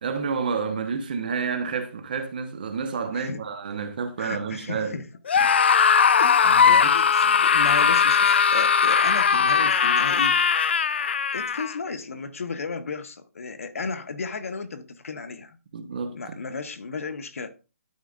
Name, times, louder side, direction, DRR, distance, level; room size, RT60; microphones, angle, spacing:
voice 1, 0.0-4.9 5.4-5.5 6.4-6.8 15.7-16.1, right 5 dB, 35° right, 1.0 m, -29 dB
voice 2, 3.1-3.4 4.2-5.1 6.2-10.5 11.3-15.6 16.1-17.5, left 4 dB, 60° left, 1.1 m, -34 dB
Screaming, 5.3-11.7, left 6 dB, 45° left, 0.3 m, -19 dB
12.5 x 5.0 x 2.4 m
hypercardioid pair, 175°, 9 cm